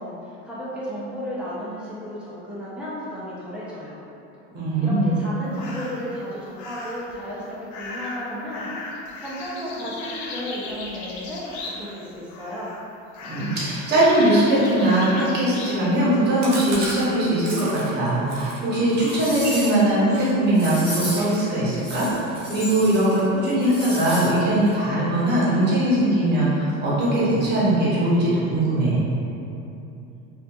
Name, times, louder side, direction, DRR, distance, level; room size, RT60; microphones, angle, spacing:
voice 1, 0.0-4.0 4.8-12.7, equal, 5° right, -9 dB, 0.7 m, -34 dB
voice 2, 4.5-5.1 13.3-22.1 22.5-29.0, right 1 dB, 35° right, -9 dB, 1.0 m, -20 dB
sound 1, 5.5-6.1 6.6-7.1 7.7-12.0 12.3-12.8 13.1-15.8, left 2 dB, 70° left, 0.5 m, -37 dB
Chewing mastication, 16.4-20.3 20.6-20.8 21.1-24.1 24.5-24.9 25.1-26.0 26.3-26.4 26.7-26.8 27.1-27.7, right 1 dB, 90° right, 0.7 m, -37 dB
sound 2, 18.3-18.4 18.9-19.9 20.5-21.4 21.8-23.2 23.4-24.3 24.7-24.8, left 1 dB, 35° left, 1.4 m, -34 dB
2.7 x 2.5 x 2.4 m, 2.8 s
supercardioid pair, 120°, 31 cm